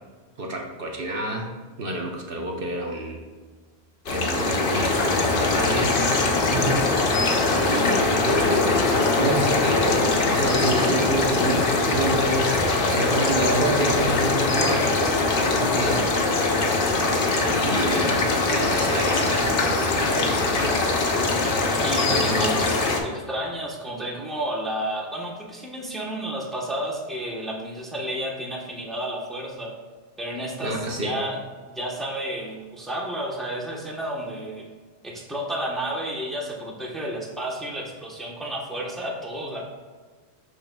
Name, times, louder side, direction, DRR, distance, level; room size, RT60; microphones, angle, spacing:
voice 1, 0.4-1.5 1.8-3.2 4.1-6.0 7.5-12.6 12.9-14.9 15.5-16.1 17.4-18.2 18.5-20.8 22.1-22.5 30.6-31.2, right 1 dB, 60° right, 0 dB, 1.0 m, -28 dB
sound 1, 4.1-23.0, left 3 dB, 60° left, 0.9 m, -22 dB
voice 2, 6.5-6.8 17.9-18.2 21.8-29.7 30.2-31.4 31.7-34.7 35.0-39.6, right 1 dB, ahead, -2 dB, 0.9 m, -31 dB
11.0 x 3.8 x 2.2 m, 1.5 s
omnidirectional pair, 1.1 m